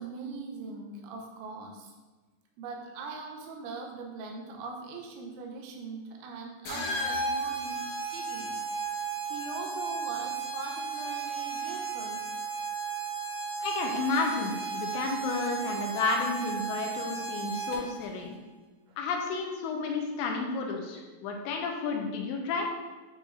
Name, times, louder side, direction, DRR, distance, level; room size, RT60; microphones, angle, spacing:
voice 1, 0.0-1.9 2.6-8.6 8.9-12.3 18.9-19.0, right 4 dB, 90° right, 1 dB, 3.2 m, -41 dB
sound 1, 6.7-18.0, right 4 dB, 65° left, 1.9 m, -34 dB
voice 2, 13.6-18.4 19.0-22.7, left 4 dB, 85° left, 1 dB, 2.9 m, -31 dB
9.2 x 5.0 x 2.6 m, 1.3 s
omnidirectional pair, 5.2 m